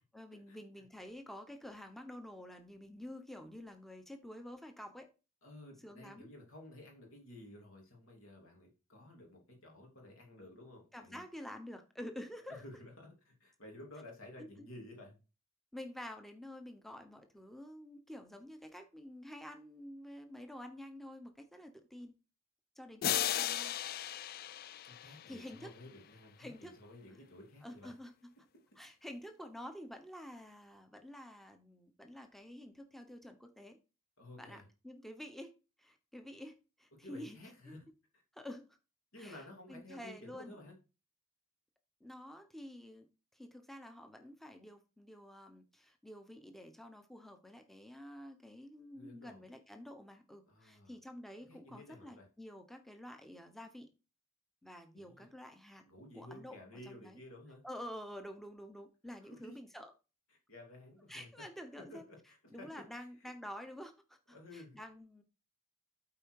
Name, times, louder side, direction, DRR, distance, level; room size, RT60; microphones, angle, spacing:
voice 1, 0.1-5.1 5.8-6.3 10.9-12.6 14.4-14.7 15.7-22.1 22.8-23.8 24.9-25.7 26.4-26.8 27.6-28.3 28.8-33.8 34.4-35.5 35.8-37.4 37.7-37.8 38.3-38.7 39.2-40.6 42.0-43.1 43.3-53.9 54.6-55.8 56.1-57.2 57.6-59.9 61.1-62.0 62.5-65.2, left 1 dB, ahead, 6 dB, 0.9 m, -49 dB
voice 2, 5.4-11.2 12.5-15.2 24.9-27.9 34.2-34.6 37.0-37.9 39.1-40.7 48.9-49.5 50.5-50.9 51.5-52.3 54.9-55.3 55.8-57.6 59.2-59.6 60.3-61.4 61.8-63.3 64.3-64.8, left 1 dB, 70° left, 0 dB, 3.0 m, -53 dB
sound 1, 23.0-25.7, left 11 dB, 45° left, 0.3 m, -36 dB
8.7 x 4.5 x 4.7 m, 0.32 s
head